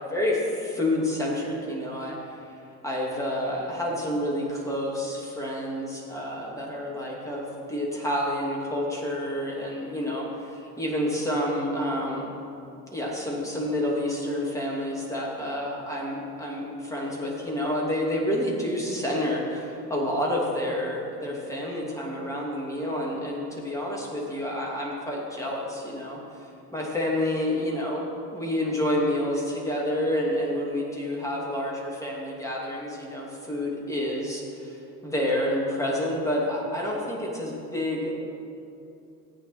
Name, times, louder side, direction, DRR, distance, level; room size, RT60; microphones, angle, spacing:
voice 1, 0.0-2.2 2.4-2.5 2.8-12.3 12.9-28.1 28.3-38.1, left 1 dB, 5° left, -3 dB, 2.8 m, -29 dB
14.5 x 8.8 x 4.4 m, 2.7 s
figure-of-eight pair, 65°, 47 cm